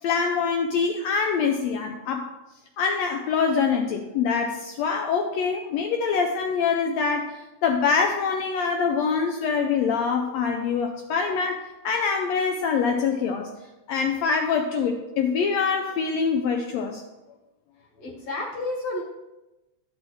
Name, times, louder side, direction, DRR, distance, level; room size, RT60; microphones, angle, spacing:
voice 1, 0.0-2.3 2.8-13.5 13.9-17.0, left 5 dB, 80° left, 3 dB, 1.6 m, -24 dB
voice 2, 18.0-19.0, left 2 dB, 60° left, -2 dB, 2.5 m, -31 dB
11.5 x 6.2 x 3.1 m, 1.0 s
omnidirectional pair, 3.5 m